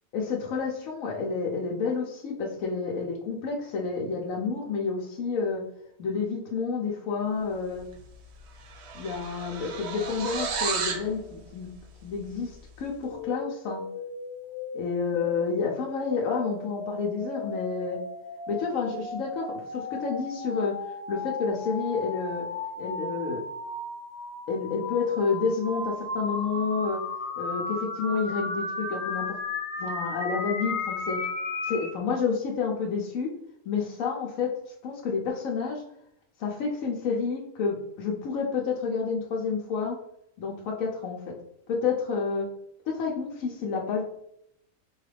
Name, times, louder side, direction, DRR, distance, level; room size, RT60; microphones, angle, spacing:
voice 1, 0.1-5.6 6.0-7.9 8.9-11.7 12.0-13.8 14.7-18.0 18.5-22.5 22.8-23.4 24.5-27.0 27.4-29.4 29.8-31.2 31.6-33.3 33.7-34.5 34.8-35.8 36.4-40.0 40.4-41.3 41.7-42.5 42.9-44.0, left 5 dB, 80° left, -2 dB, 1.1 m, -29 dB
sound 1, 7.9-8.1 8.4-11.1, right 5 dB, 60° right, 0.8 m, -33 dB
sound 2, 13.0-31.9, left 3 dB, 55° left, 0.9 m, -35 dB
4.6 x 2.4 x 3.2 m, 0.74 s
omnidirectional pair, 1.4 m